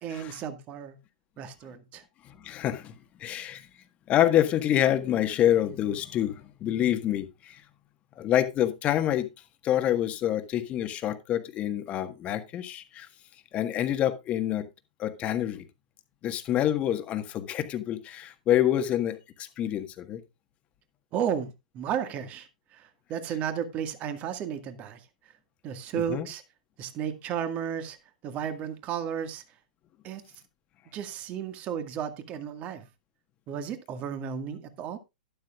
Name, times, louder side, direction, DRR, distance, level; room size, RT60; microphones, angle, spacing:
voice 1, 0.0-1.0 1.4-2.0 21.1-25.1 25.6-26.4 26.8-28.0 28.2-29.4 30.0-30.2 30.9-32.9 33.5-35.0, right 8 dB, 30° right, 1.9 m, -33 dB
voice 2, 2.2-2.9 3.2-3.7 4.1-7.6 8.2-9.3 9.6-13.1 13.5-14.7 15.0-15.6 16.2-20.2 26.1-26.3, left 11 dB, 30° left, 1.5 m, -27 dB
12.0 x 11.5 x 2.5 m
figure-of-eight pair, 110°, 4 cm